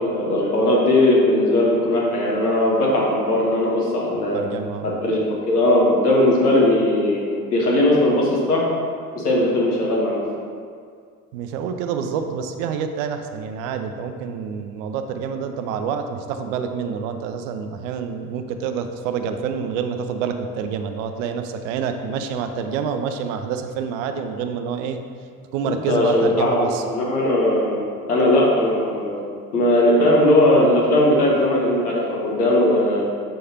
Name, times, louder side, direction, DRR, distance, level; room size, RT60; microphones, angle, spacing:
voice 1, 0.0-4.4 4.8-7.2 7.5-8.6 9.1-10.2 25.6-27.8 28.1-29.2 29.5-33.1, left 1 dB, 80° left, -3 dB, 1.3 m, -18 dB
voice 2, 4.3-5.0 11.3-25.0 25.5-26.8, right 6 dB, 55° right, 7 dB, 0.6 m, -27 dB
6.5 x 6.4 x 2.8 m, 2.1 s
figure-of-eight pair, 60°, 46 cm